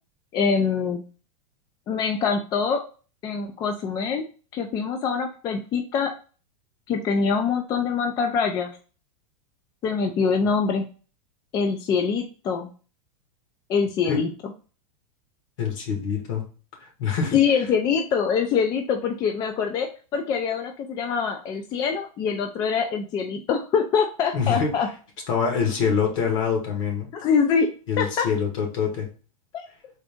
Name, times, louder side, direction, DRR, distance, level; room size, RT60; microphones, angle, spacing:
voice 1, 0.3-1.0 1.9-2.8 3.2-4.2 4.5-6.1 6.9-8.8 9.8-10.9 11.5-12.7 13.7-14.5 17.3-24.9 27.1-28.3 29.5-29.6, left 6 dB, 20° left, 5 dB, 0.3 m, -24 dB
voice 2, 15.6-16.5 16.8-17.4 24.3-24.7 25.3-27.1 27.9-29.1, left 6 dB, 60° left, 1 dB, 1.8 m, -25 dB
3.9 x 2.5 x 3.5 m, 0.36 s
supercardioid pair, 150°, 19 cm